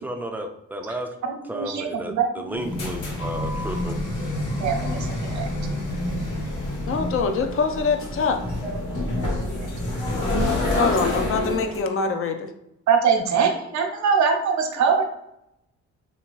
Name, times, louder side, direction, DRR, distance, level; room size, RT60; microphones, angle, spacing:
voice 1, 0.0-1.1 1.5-3.9, right 1 dB, 5° right, 3 dB, 0.5 m, -33 dB
voice 2, 1.2-2.7 4.6-5.1 5.3-5.4 9.2-9.6 10.8-10.9 12.9-15.0, right 6 dB, 70° right, 2 dB, 0.7 m, -23 dB
sound 1, 2.5-11.8, left 1 dB, 75° left, 1.3 m, -27 dB
voice 3, 6.9-8.4 10.7-12.5, left 5 dB, 45° left, 6 dB, 0.6 m, -24 dB
3.3 x 2.8 x 3.0 m, 0.83 s
cardioid pair, 90°, 30 cm